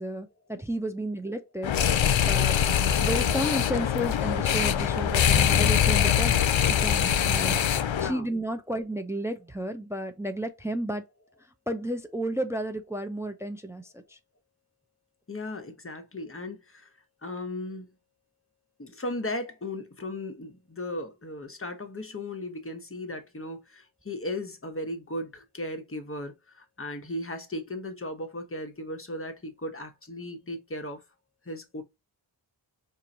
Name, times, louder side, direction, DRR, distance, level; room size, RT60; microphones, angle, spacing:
voice 1, 0.0-1.7 2.2-2.6 3.0-6.4 6.8-7.6 8.0-11.0 11.7-13.8, right 1 dB, 5° right, 0.5 m, -32 dB
sound 1, 1.6-8.1, left 9 dB, 75° left, 0.5 m, -23 dB
voice 2, 7.9-8.3 15.3-16.9 17.2-17.9 18.8-31.0 31.5-31.8, left 1 dB, 30° left, 0.9 m, -36 dB
4.5 x 2.5 x 2.7 m
wide cardioid pair, 45°, 47 cm